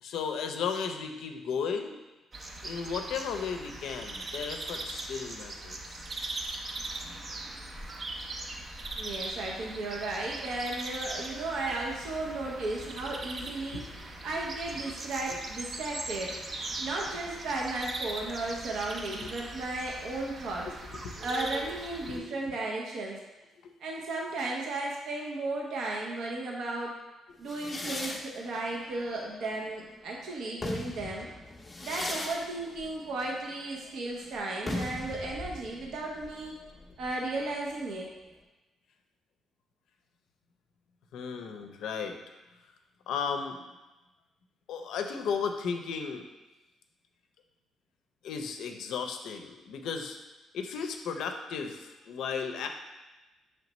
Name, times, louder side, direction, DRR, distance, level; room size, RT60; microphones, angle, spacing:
voice 1, 0.0-2.0 2.6-5.8 13.7-13.9 20.7-21.2 22.1-22.5 23.6-23.7 41.1-42.2 43.1-43.6 44.7-46.3 48.2-50.2 50.5-52.7, left 6 dB, 80° left, 5 dB, 0.4 m, -35 dB
sound 1, 2.3-22.2, right 2 dB, 35° right, 0.5 m, -40 dB
voice 2, 9.0-16.4 16.8-20.7 21.2-23.2 23.8-26.9 27.4-31.3 31.8-36.5 37.0-38.1, right 2 dB, 75° right, -1 dB, 0.6 m, -35 dB
sound 2, 27.5-29.9 30.4-37.9, left 2 dB, 20° left, 0.5 m, -40 dB
5.0 x 3.2 x 3.0 m, 1.1 s
cardioid pair, 90°, 0 cm